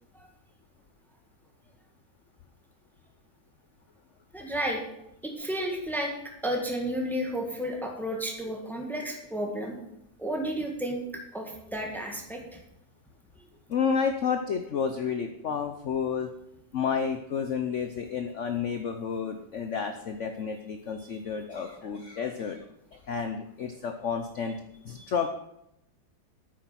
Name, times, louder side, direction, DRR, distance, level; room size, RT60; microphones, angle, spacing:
voice 1, 4.3-4.8 5.2-6.1 6.4-9.8 10.2-12.4, equal, ahead, 1 dB, 1.8 m, -32 dB
voice 2, 13.7-16.3 16.7-22.6 22.9-24.6 24.8-25.3, left 6 dB, 55° left, 6 dB, 0.9 m, -30 dB
9.2 x 9.1 x 5.9 m, 0.81 s
omnidirectional pair, 1.9 m